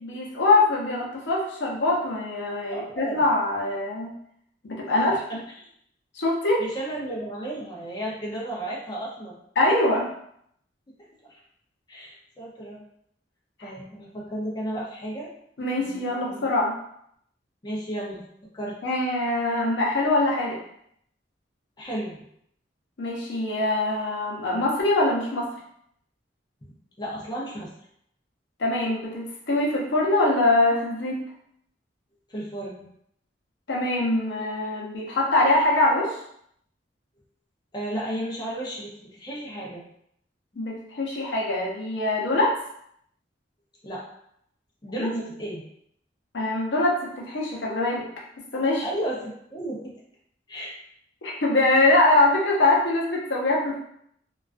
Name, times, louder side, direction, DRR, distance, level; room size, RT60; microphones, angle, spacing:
voice 1, 0.0-4.1 4.6-5.1 6.1-6.6 9.6-10.1 13.6-13.7 15.6-16.8 18.8-20.6 23.0-25.5 28.6-31.2 33.7-36.2 40.6-42.5 45.0-45.1 46.3-48.1 48.5-48.9 51.2-53.8, left 2 dB, 75° left, -3 dB, 0.6 m, -23 dB
voice 2, 2.7-3.2 4.9-5.2 6.6-9.4 11.3-11.4 11.9-12.8 13.6-15.3 15.8-16.4 17.6-18.2 18.5-18.8 21.8-22.2 27.0-27.7 32.3-32.8 37.7-39.8 43.8-44.0 44.8-45.6 48.8-49.9 50.5-50.7, right 1 dB, 25° left, -5 dB, 0.5 m, -33 dB
2.3 x 2.3 x 2.4 m, 0.71 s
head